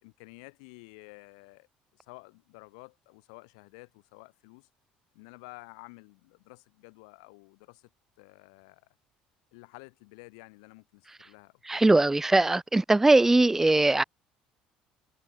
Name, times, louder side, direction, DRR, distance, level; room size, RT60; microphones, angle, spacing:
voice 1, 0.0-1.7 1.9-4.7 5.1-7.9 8.2-8.8 9.5-11.8, left 31 dB, 85° left, 6.1 m, -51 dB
voice 2, 11.7-14.0, right 2 dB, 10° right, 0.4 m, -21 dB
supercardioid pair, 80°, 3 cm